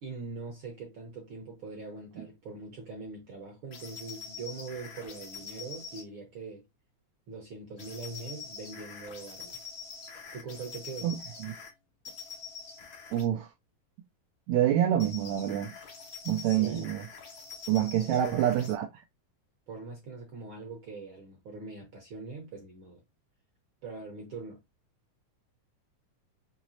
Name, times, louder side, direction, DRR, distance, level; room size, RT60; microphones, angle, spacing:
voice 1, 0.0-6.6 7.3-9.7 10.3-11.1 16.4-16.9 18.0-18.5 19.7-23.0 23.8-24.6, right 3 dB, 70° right, 1.2 m, -42 dB
sound 1, 3.7-6.0 7.8-11.7 12.1-13.3 15.0-18.7, left 5 dB, 65° left, 1.2 m, -45 dB
voice 2, 11.0-11.5 13.1-13.5 14.5-15.7 16.3-17.0 17.7-18.9, right 11 dB, 90° right, 1.6 m, -27 dB
6.1 x 2.9 x 2.7 m
omnidirectional pair, 3.8 m